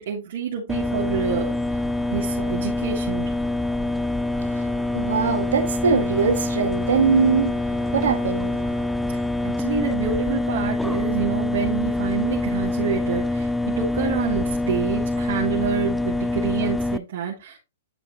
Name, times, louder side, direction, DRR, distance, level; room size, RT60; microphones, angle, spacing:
voice 1, 0.0-1.5 2.1-3.3 9.1-13.5 13.7-17.6, right 7 dB, 60° right, 3.2 m, -28 dB
sound 1, 0.7-17.0, left 2 dB, 5° left, 0.5 m, -25 dB
voice 2, 4.3-8.9, right 6 dB, 80° right, 2.4 m, -23 dB
11.0 x 5.0 x 3.2 m
hypercardioid pair, 130°, 0 cm